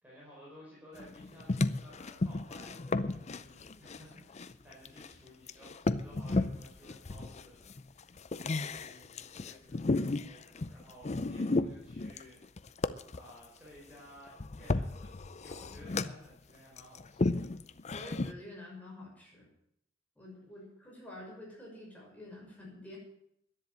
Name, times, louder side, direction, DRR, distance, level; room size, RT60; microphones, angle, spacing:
voice 1, 0.0-12.8 13.1-17.6, equal, 10° right, -6 dB, 4.9 m, -56 dB
sound 1, 1.0-5.1 5.5-13.3 14.3-16.3 16.8-18.3, left 2 dB, 35° left, 0.5 m, -33 dB
voice 2, 17.9-19.5 20.2-23.0, left 1 dB, 10° left, -3 dB, 6.0 m, -48 dB
10.5 x 10.5 x 9.0 m, 0.75 s
head